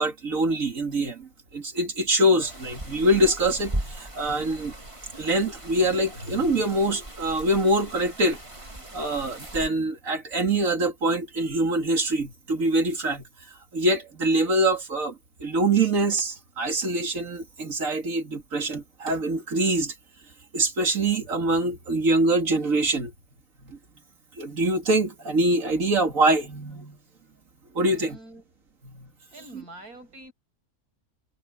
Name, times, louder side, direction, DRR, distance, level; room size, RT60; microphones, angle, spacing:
voice 1, 0.0-4.7 5.2-8.4 8.9-13.3 13.7-19.9 20.5-23.1 23.6-23.8 24.4-27.0 27.7-28.2 28.8-29.1 29.5-29.6, right 1 dB, 60° right, 2.8 m, -24 dB
sound 1, 2.4-9.7, right 1 dB, 20° right, 2.4 m, -38 dB
voice 2, 27.9-28.4 29.3-30.3, right 1 dB, 80° right, 8.3 m, -45 dB
omnidirectional pair, 1.6 m